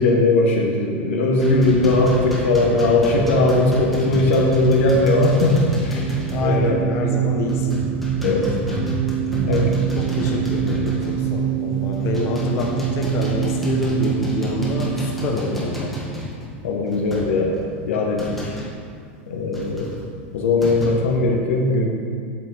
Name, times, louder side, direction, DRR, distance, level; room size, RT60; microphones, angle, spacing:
voice 1, 0.0-6.1 6.4-6.8 8.2-8.5 9.5-9.7 16.6-18.6 19.3-19.9 20.3-21.9, left 2 dB, 85° left, 0 dB, 1.2 m, -19 dB
sound 1, 1.4-6.6 6.9-7.1 7.5-11.5 11.9-18.8 19.5-20.9, equal, ahead, 1.6 m, -30 dB
sound 2, 4.3-16.5, right 9 dB, 25° right, 0.6 m, -25 dB
voice 2, 6.3-7.8 10.0-15.9, left 3 dB, 40° left, 0 dB, 1.0 m, -27 dB
8.5 x 3.7 x 6.1 m, 2.2 s
supercardioid pair, 130°, 7 cm